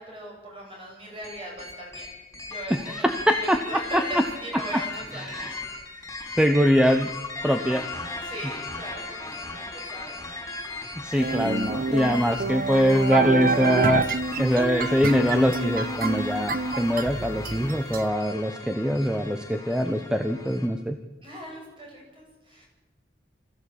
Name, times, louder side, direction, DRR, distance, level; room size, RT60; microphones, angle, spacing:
voice 1, 0.0-2.1 2.4-5.6 5.8-6.1 8.2-10.2 19.4-19.8 21.2-22.7, right 1 dB, 30° right, -1 dB, 7.7 m, -40 dB
sound 1, 1.2-20.7, left 3 dB, 15° left, 4.6 m, -37 dB
voice 2, 2.7-4.2 5.1-5.5 6.4-7.1 7.4-7.8 11.0-14.0 14.4-21.0, equal, 5° right, 6 dB, 1.0 m, -23 dB
sound 2, 11.2-18.0, right 3 dB, 55° right, 1.2 m, -27 dB
25.0 x 15.0 x 8.6 m, 1.2 s
head